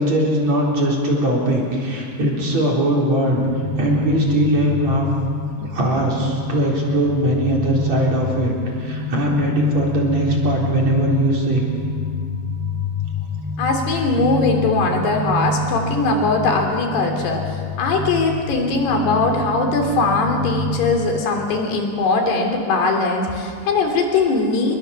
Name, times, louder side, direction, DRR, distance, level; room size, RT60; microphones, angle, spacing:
voice 1, 0.0-3.4 3.8-5.1 5.6-11.6, right 1 dB, 40° right, -2 dB, 4.8 m, -20 dB
sound 1, 3.3-20.8, left 2 dB, 25° left, 8.1 m, -27 dB
voice 2, 13.6-24.8, left 3 dB, 60° left, 3 dB, 5.1 m, -20 dB
28.5 x 22.5 x 7.1 m, 2.2 s
omnidirectional pair, 5.3 m